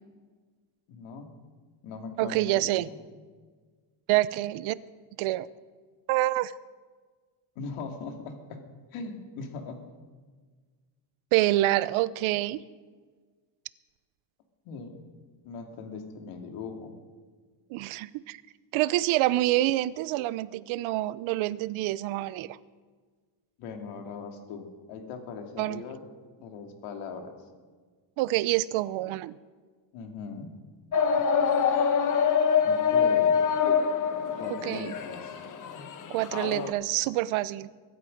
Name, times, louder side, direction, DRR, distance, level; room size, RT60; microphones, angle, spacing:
voice 1, 0.9-1.3 1.8-3.0 7.6-8.6 8.9-9.8 14.6-15.0 15.4-16.9 23.6-26.0 26.4-27.4 29.9-30.5 31.2-31.3 32.6-33.4 34.4-35.3, left 4 dB, 80° left, 4 dB, 2.4 m, -40 dB
voice 2, 2.2-2.9 4.1-4.7 5.2-5.5 6.1-6.5 11.3-12.6 17.7-18.4 18.7-22.6 25.6-25.8 28.2-29.4 34.5-34.9 36.1-37.7, right 16 dB, 75° right, 18 dB, 0.7 m, -27 dB
sound 1, 30.9-36.7, left 7 dB, 40° left, 1.2 m, -25 dB
23.0 x 11.5 x 5.2 m, 1.5 s
cardioid pair, 160°, 49 cm